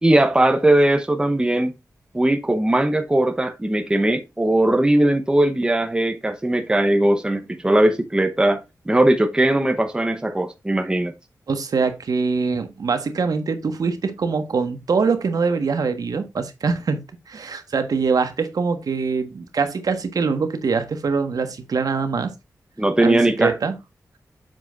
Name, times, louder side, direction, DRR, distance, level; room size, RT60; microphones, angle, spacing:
voice 1, 0.0-1.7 2.1-11.1 22.8-23.5, right 1 dB, 15° right, 0.9 m, -19 dB
voice 2, 11.5-22.3 23.0-23.8, right 5 dB, 70° right, 1.4 m, -23 dB
7.8 x 7.6 x 2.5 m
wide cardioid pair, 120°, 7 cm